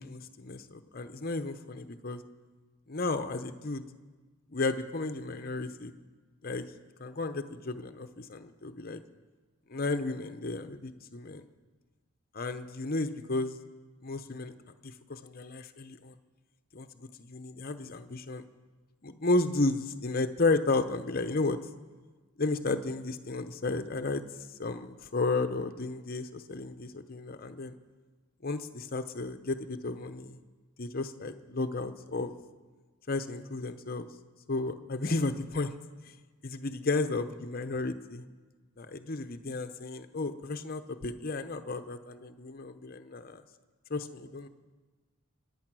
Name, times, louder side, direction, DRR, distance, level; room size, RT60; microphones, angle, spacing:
voice 1, 0.0-2.2 2.9-3.8 4.5-5.9 6.4-6.7 7.0-9.0 9.7-11.4 12.3-13.6 14.0-14.5 14.8-16.2 16.7-16.9 17.2-18.4 19.0-21.6 22.4-24.2 24.6-27.8 28.4-30.4 30.8-32.3 33.1-34.1 34.5-35.7 36.4-38.2 38.8-43.4 43.9-44.5, left 3 dB, 40° left, 9 dB, 0.7 m, -33 dB
24.0 x 9.5 x 6.2 m, 1.4 s
head